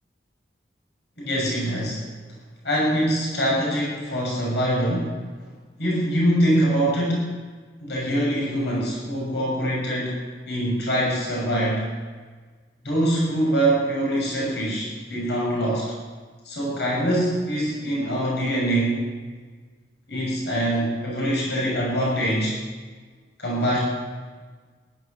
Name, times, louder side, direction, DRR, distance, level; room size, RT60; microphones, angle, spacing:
voice 1, 1.2-2.0 2.6-5.2 5.8-7.3 7.8-10.2 10.5-11.9 12.8-15.9 16.4-19.1 20.1-22.6 23.4-23.8, right 1 dB, 70° left, -4 dB, 6.5 m, -24 dB
16.5 x 12.0 x 6.7 m, 1.5 s
head